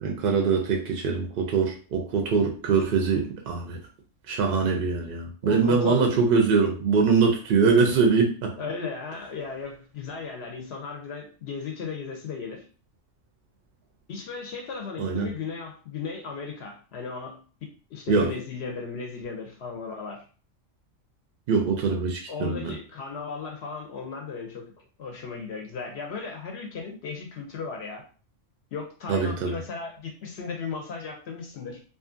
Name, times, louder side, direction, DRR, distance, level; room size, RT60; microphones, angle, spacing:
voice 1, 0.0-3.8 4.3-8.5 15.0-15.3 18.1-18.3 21.5-22.7 29.1-29.6, right 5 dB, 65° right, 2 dB, 0.5 m, -23 dB
voice 2, 5.4-6.0 8.6-12.7 14.1-17.4 17.9-20.2 22.3-28.0 28.7-31.8, left 5 dB, 65° left, 2 dB, 0.7 m, -36 dB
2.6 x 2.4 x 2.4 m, 0.38 s
omnidirectional pair, 1.3 m